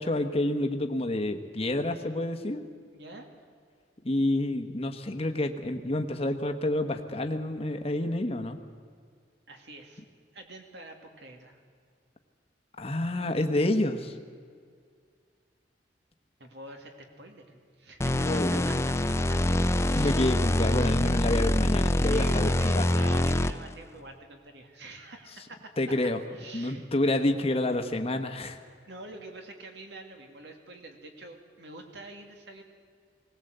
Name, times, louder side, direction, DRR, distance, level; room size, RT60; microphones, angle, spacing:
voice 1, 0.0-2.6 4.0-8.6 12.8-14.1 18.2-18.7 19.9-22.5 22.7-23.0 25.8-26.2 26.5-28.6, left 1 dB, 35° left, 5 dB, 1.2 m, -28 dB
voice 2, 2.9-3.3 9.5-10.0 10.3-11.6 16.4-18.4 18.7-18.9 19.3-19.4 19.8-20.1 22.1-25.7 26.3-26.9 28.8-32.6, right 2 dB, 65° right, 3 dB, 2.5 m, -46 dB
sound 1, 18.0-23.8, left 1 dB, 15° left, 0.5 m, -25 dB
20.5 x 17.5 x 8.0 m, 2.1 s
head